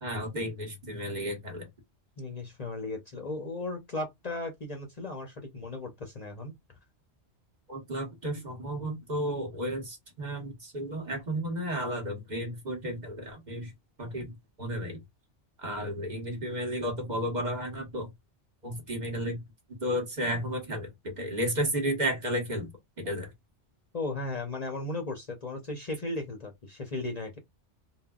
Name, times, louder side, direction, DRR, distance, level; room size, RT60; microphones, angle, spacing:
voice 1, 0.0-1.7 7.7-13.7 14.0-15.0 15.6-18.1 18.6-19.4 19.7-22.7 23.0-23.3, equal, 40° right, 1.0 m, -33 dB
voice 2, 2.2-6.5 23.9-27.4, left 2 dB, 40° left, 0.7 m, -36 dB
3.6 x 2.3 x 2.2 m
omnidirectional pair, 1.2 m